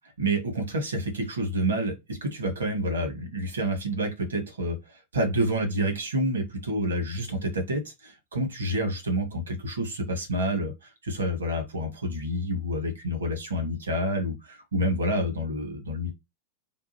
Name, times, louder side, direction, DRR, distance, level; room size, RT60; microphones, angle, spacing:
voice 1, 0.2-4.8 5.1-10.7 11.0-16.1, right 1 dB, 70° right, 1.4 m, -28 dB
3.6 x 2.4 x 2.9 m
figure-of-eight pair, 90°, 0 cm